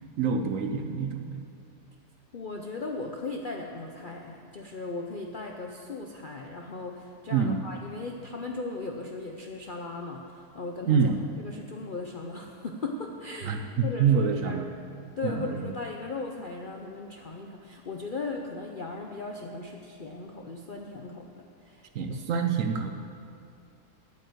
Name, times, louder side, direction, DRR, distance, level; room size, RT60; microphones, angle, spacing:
voice 1, 0.2-1.4 7.3-7.6 10.9-11.2 13.4-14.7 15.2-15.7 21.9-22.9, right 6 dB, 65° right, 6 dB, 0.9 m, -26 dB
voice 2, 2.3-11.1 11.4-14.6 15.2-22.2, left 3 dB, 55° left, 1 dB, 0.5 m, -37 dB
9.0 x 8.8 x 7.8 m, 2.5 s
omnidirectional pair, 1.7 m